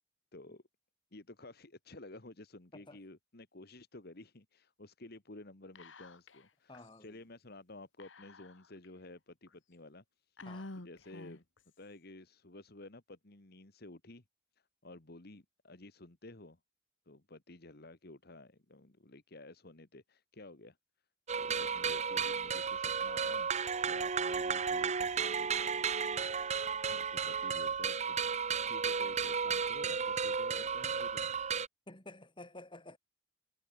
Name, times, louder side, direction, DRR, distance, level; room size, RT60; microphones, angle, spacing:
voice 1, 0.3-0.6 1.1-10.5 10.7-11.5 11.8-14.2 14.6-16.6 17.1-20.8 21.4-23.5 23.9-25.8 26.9-31.3, left 2 dB, 55° left, 1.8 m, -53 dB
Whispering, 5.7-6.5 6.7-6.8 8.0-8.8 9.5-9.6 10.4-11.6, left 2 dB, 80° left, 1.8 m, -49 dB
voice 2, 6.7-7.2 10.5-10.7 21.5-21.7 31.9-33.0, left 2 dB, 25° left, 6.2 m, -52 dB
sound 1, 21.3-31.7, right 6 dB, 35° right, 0.8 m, -33 dB
head